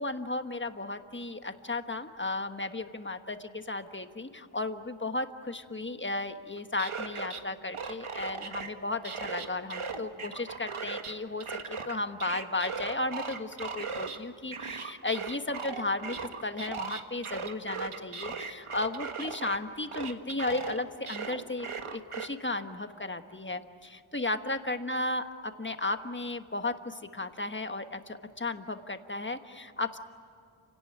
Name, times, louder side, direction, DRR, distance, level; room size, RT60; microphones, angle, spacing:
voice 1, 0.0-11.5 11.9-16.2 16.4-30.0, left 2 dB, 25° left, 8 dB, 1.4 m, -34 dB
sound 1, 6.6-7.4 7.7-8.7 9.0-11.1 11.4-14.2 14.5-19.6 19.9-22.3, right 5 dB, 80° right, 1.6 m, -38 dB
29.5 x 18.0 x 10.0 m, 2.4 s
wide cardioid pair, 85°, 50 cm